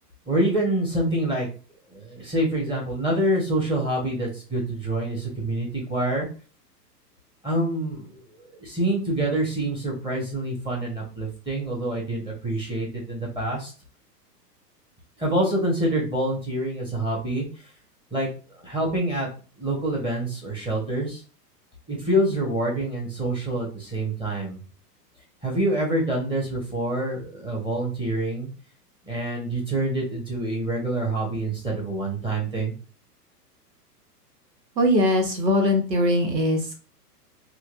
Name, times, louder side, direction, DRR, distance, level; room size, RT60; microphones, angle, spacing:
voice 1, 0.3-1.5 1.9-6.3 7.4-13.7 15.2-17.4 18.1-18.3 18.6-19.3 19.6-21.2 21.9-24.6 25.4-28.5 29.0-32.7, right 1 dB, 10° right, -2 dB, 1.3 m, -26 dB
voice 2, 34.8-36.7, left 1 dB, 90° right, 3 dB, 1.3 m, -21 dB
4.3 x 2.5 x 2.6 m, 0.37 s
hypercardioid pair, 110°, 49 cm